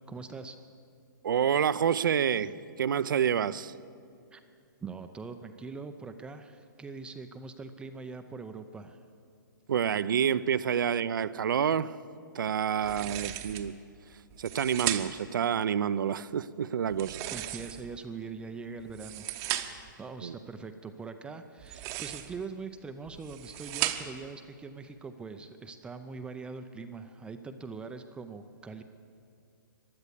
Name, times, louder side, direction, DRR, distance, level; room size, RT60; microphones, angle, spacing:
voice 1, 0.1-0.6 4.3-4.4 4.8-9.0 12.7-13.0 17.3-28.8, right 4 dB, 10° right, 7 dB, 0.5 m, -42 dB
voice 2, 1.2-2.5 2.8-3.7 9.7-11.9 12.3-13.8 14.4-17.2 20.2-20.3, right 8 dB, 75° right, 17 dB, 0.5 m, -28 dB
sound 1, 12.8-13.7 14.3-15.3 16.9-18.0 18.8-19.9 21.6-22.4 23.1-24.3, right 14 dB, 30° right, 0.8 m, -36 dB
15.5 x 10.5 x 8.3 m, 2.4 s
hypercardioid pair, 140°, 11 cm